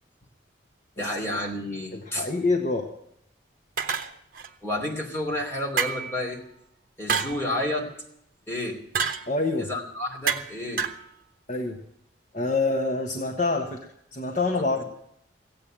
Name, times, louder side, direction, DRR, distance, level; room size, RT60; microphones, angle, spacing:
voice 1, 1.0-2.3 4.6-6.4 7.0-7.9 8.5-8.8 9.6-10.9 14.6-14.7, left 1 dB, 15° left, -1 dB, 2.8 m, -30 dB
voice 2, 1.9-2.9 7.1-7.2 9.3-9.7 11.5-11.8 12.3-13.8 14.1-14.8, left 3 dB, 40° left, 2 dB, 1.3 m, -26 dB
sound 1, 3.8-4.5 5.8-6.2 7.1-7.4 8.9-9.3 10.3-10.5 10.8-11.0, right 6 dB, 50° right, 1.0 m, -27 dB
15.5 x 8.6 x 8.8 m, 0.73 s
head